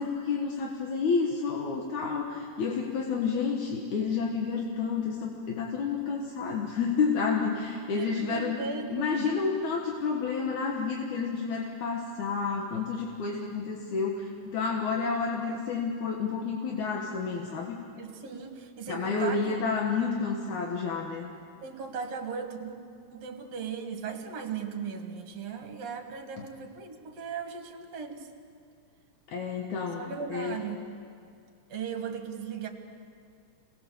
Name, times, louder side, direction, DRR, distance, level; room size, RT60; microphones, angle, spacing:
voice 1, 0.0-8.6 8.9-17.8 18.9-21.3 26.4-26.5 29.3-30.6, left 5 dB, 75° left, 0 dB, 2.9 m, -30 dB
voice 2, 7.9-9.3 18.0-19.6 21.6-22.8 23.1-28.3 29.7-30.9 31.7-32.7, right 6 dB, 60° right, 3 dB, 2.9 m, -37 dB
27.5 x 19.0 x 7.1 m, 2.3 s
omnidirectional pair, 3.5 m